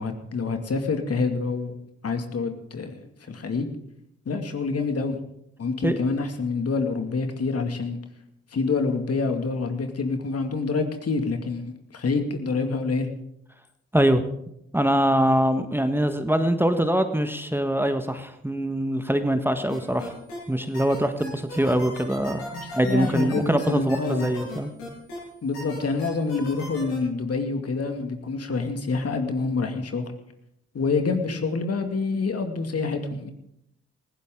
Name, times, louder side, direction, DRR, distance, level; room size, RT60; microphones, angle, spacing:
voice 1, 0.0-1.8 2.0-3.7 4.3-5.2 5.6-8.0 8.5-13.1 22.5-24.3 25.4-30.0 30.7-33.3, left 4 dB, 50° left, 6 dB, 2.3 m, -27 dB
voice 2, 14.7-20.1 20.5-24.7, right 1 dB, 5° right, 8 dB, 1.5 m, -23 dB
sound 1, 19.7-20.4 20.7-25.2 25.5-27.0, left 2 dB, 85° left, 7.7 m, -38 dB
19.5 x 16.0 x 3.8 m, 0.79 s
hypercardioid pair, 40°, 32 cm